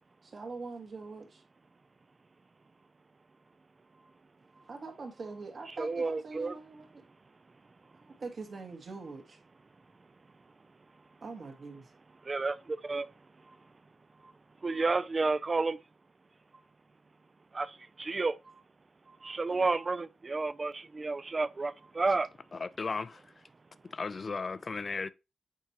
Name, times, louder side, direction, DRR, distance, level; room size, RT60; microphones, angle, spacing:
voice 1, 0.2-1.4 4.7-7.0 7.9-9.4 11.2-11.9 19.5-19.7, right 3 dB, 50° right, 1.7 m, -43 dB
voice 2, 5.8-6.5 12.2-13.1 13.5-13.6 14.2-14.3 14.6-15.8 17.5-18.6 19.1-22.3, right 3 dB, 30° right, 0.4 m, -31 dB
voice 3, 22.5-23.2 23.9-25.1, left 4 dB, 35° left, 0.4 m, -35 dB
8.0 x 4.6 x 2.9 m
cardioid pair, 100°, 0 cm